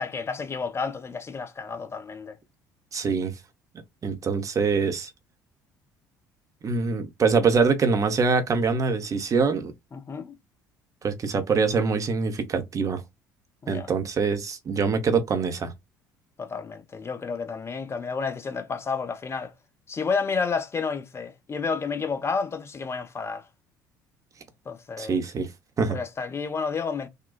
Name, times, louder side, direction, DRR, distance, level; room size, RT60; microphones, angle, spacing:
voice 1, 0.0-2.4 9.9-10.4 13.6-13.9 16.4-19.5 19.9-23.5 24.7-25.2 25.9-27.1, left 5 dB, 25° left, 0.7 m, -30 dB
voice 2, 2.9-3.3 4.0-5.1 6.6-9.7 11.0-13.0 13.7-15.7 25.0-25.5 25.8-26.0, right 5 dB, 35° right, 0.7 m, -24 dB
3.8 x 2.2 x 2.3 m
figure-of-eight pair, 55°, 10 cm